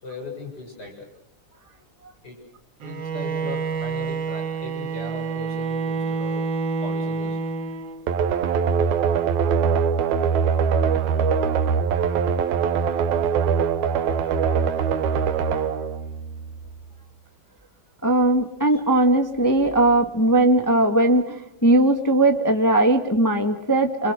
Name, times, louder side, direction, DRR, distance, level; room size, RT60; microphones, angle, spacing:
voice 1, 0.0-1.1 2.2-2.4 2.8-6.4 6.8-7.4 18.7-18.8, left 2 dB, 30° left, 1 dB, 7.6 m, -38 dB
Bowed string instrument, 2.8-8.2, right 4 dB, 50° right, 1.7 m, -28 dB
sound 1, 8.1-16.8, right 6 dB, 75° right, 2.5 m, -22 dB
voice 2, 18.0-24.1, right 1 dB, 10° left, 5 dB, 0.9 m, -19 dB
29.5 x 24.0 x 6.4 m, 0.78 s
omnidirectional pair, 3.4 m